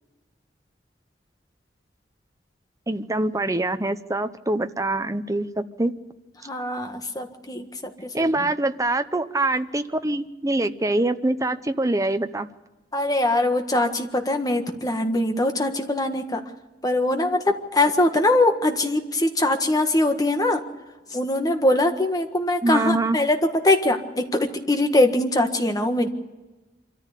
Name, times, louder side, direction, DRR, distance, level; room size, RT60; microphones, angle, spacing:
voice 1, 2.9-5.9 8.1-12.5 22.6-23.2, right 2 dB, 20° right, 10 dB, 0.8 m, -24 dB
voice 2, 6.5-7.7 8.0-8.3 12.9-16.4 16.8-20.6 21.1-23.4 23.6-26.1, left 2 dB, 20° left, 5 dB, 1.6 m, -22 dB
25.5 x 14.0 x 8.3 m, 1.1 s
head